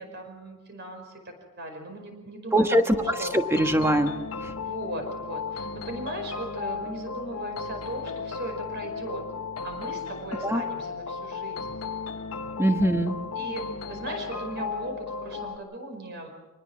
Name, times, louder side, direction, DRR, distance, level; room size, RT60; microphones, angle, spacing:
voice 1, 0.0-3.3 4.6-9.2 9.6-11.8 12.3-12.6 13.3-16.3, right 1 dB, 50° right, 4 dB, 5.2 m, -38 dB
voice 2, 2.5-4.1 4.4-4.5 10.4-10.6 12.6-13.2, right 1 dB, 10° right, 6 dB, 1.3 m, -22 dB
sound 1, 3.0-15.6, left 5 dB, 75° left, 1.3 m, -35 dB
25.5 x 20.0 x 6.2 m, 1.1 s
head